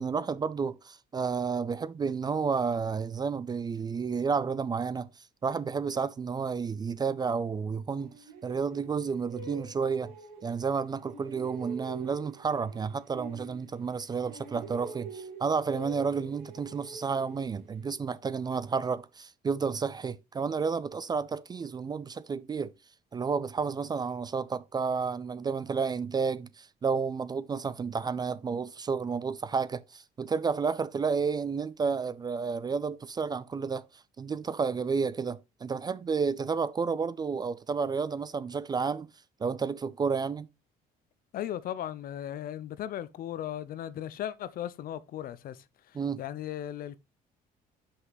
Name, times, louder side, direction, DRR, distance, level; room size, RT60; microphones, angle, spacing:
voice 1, 0.0-5.1 5.4-8.1 8.4-10.1 10.4-22.7 23.1-33.8 34.2-39.1 39.4-40.5 45.9-46.2, right 5 dB, 25° right, 0.3 m, -31 dB
sound 1, 8.0-10.7 11.0-14.0 14.2-17.8, right 3 dB, 90° right, 2.6 m, -46 dB
voice 2, 41.3-47.0, left 11 dB, 60° left, 0.6 m, -37 dB
5.5 x 5.5 x 3.9 m
cardioid pair, 110°, 17 cm